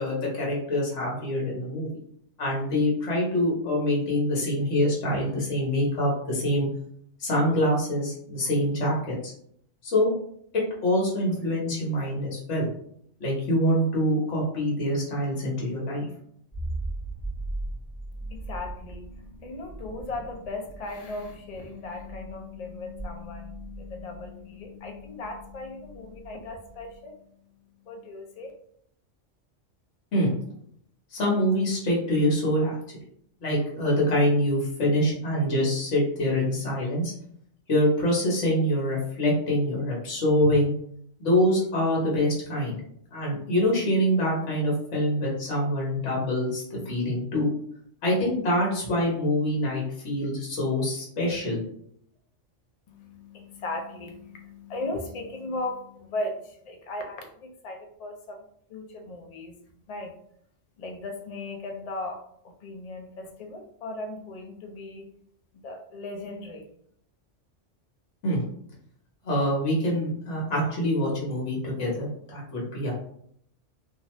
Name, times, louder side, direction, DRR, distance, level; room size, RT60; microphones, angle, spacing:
voice 1, 0.0-1.9 2.4-6.7 7.2-9.3 9.8-10.1 10.5-12.7 13.2-16.1 30.1-30.3 31.1-32.8 33.4-37.1 37.7-40.7 41.2-42.7 43.1-47.5 48.0-51.6 68.2-68.4 69.2-72.9, left 1 dB, 75° left, -4 dB, 1.3 m, -25 dB
sound 1, 16.5-26.9, right 2 dB, 20° left, 1.0 m, -39 dB
voice 2, 18.1-28.5 52.9-59.6 59.9-60.1 60.8-65.1 65.5-66.7, left 2 dB, 50° left, 3 dB, 0.5 m, -37 dB
2.7 x 2.3 x 3.0 m, 0.67 s
omnidirectional pair, 1.2 m